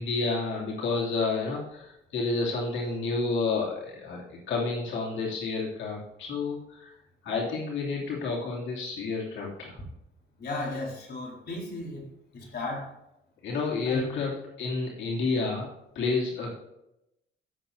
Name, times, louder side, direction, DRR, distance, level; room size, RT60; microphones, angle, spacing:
voice 1, 0.0-4.2 4.5-6.9 7.2-9.8 13.4-15.7 15.9-16.6, left 3 dB, 70° left, -4 dB, 2.9 m, -30 dB
voice 2, 10.4-12.0 12.3-12.9 13.8-14.2, left 2 dB, 55° left, -2 dB, 4.0 m, -35 dB
16.5 x 7.2 x 2.8 m, 0.86 s
cardioid pair, 90°, 20 cm